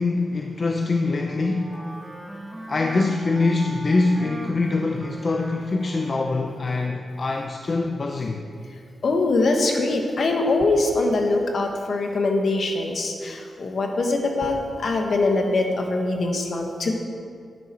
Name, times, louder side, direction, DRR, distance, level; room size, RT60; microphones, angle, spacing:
voice 1, 0.0-1.8 2.7-8.4, left 3 dB, 40° left, 3 dB, 0.6 m, -24 dB
Wind instrument woodwind instrument, 1.1-6.9, right 1 dB, 5° right, 1.6 m, -38 dB
voice 2, 9.0-16.9, left 2 dB, 55° left, 2 dB, 1.5 m, -23 dB
10.5 x 10.5 x 4.6 m, 2.3 s
wide cardioid pair, 115°, 0 cm